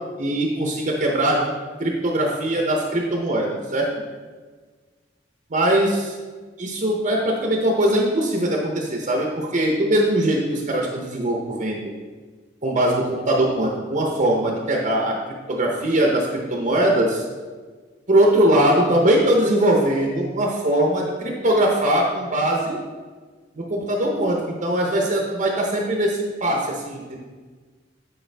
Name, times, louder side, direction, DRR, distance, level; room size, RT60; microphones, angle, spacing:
voice 1, 0.2-1.4 1.8-3.9 5.5-6.2 6.6-11.9 12.6-17.2 18.1-22.8 23.5-27.2, right 1 dB, 40° right, 0 dB, 0.8 m, -21 dB
8.9 x 4.7 x 3.4 m, 1.4 s
head